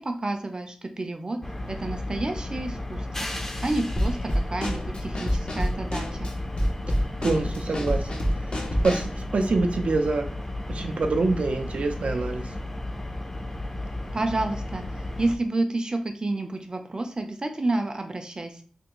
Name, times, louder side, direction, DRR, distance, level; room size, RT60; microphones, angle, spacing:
voice 1, 0.0-1.4 1.7-3.3 3.6-6.3 14.1-18.6, right 2 dB, 40° right, 5 dB, 0.6 m, -30 dB
sound 1, 1.4-15.4, left 1 dB, 20° left, 0.5 m, -34 dB
Drum kit / Snare drum, 4.0-9.2, equal, 55° left, 0.7 m, -28 dB
voice 2, 7.2-8.2 8.8-10.2 10.7-12.4, right 3 dB, 85° right, 5 dB, 0.5 m, -25 dB
3.5 x 2.4 x 3.0 m, 0.43 s
wide cardioid pair, 75°, 2 cm